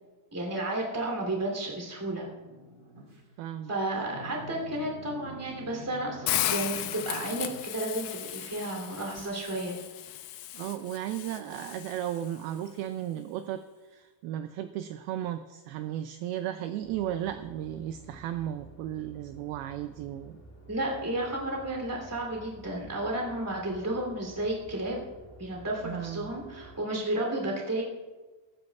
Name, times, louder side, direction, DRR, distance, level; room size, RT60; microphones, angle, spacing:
voice 1, 0.3-2.3 3.7-9.8 20.7-25.1 25.4-27.8, right 1 dB, 5° right, -1 dB, 2.1 m, -32 dB
sound 1, 2.4-3.2 4.1-7.6, equal, 35° right, 1.9 m, -46 dB
voice 2, 3.4-3.7 10.5-13.6 13.9-20.4 25.8-26.3, right 11 dB, 85° right, 9 dB, 2.2 m, -35 dB
Hiss, 6.3-12.3, left 13 dB, 80° left, 2.4 m, -35 dB
sound 2, 16.8-26.8, right 2 dB, 10° left, 0.7 m, -52 dB
22.0 x 13.0 x 2.4 m, 1.3 s
omnidirectional pair, 4.7 m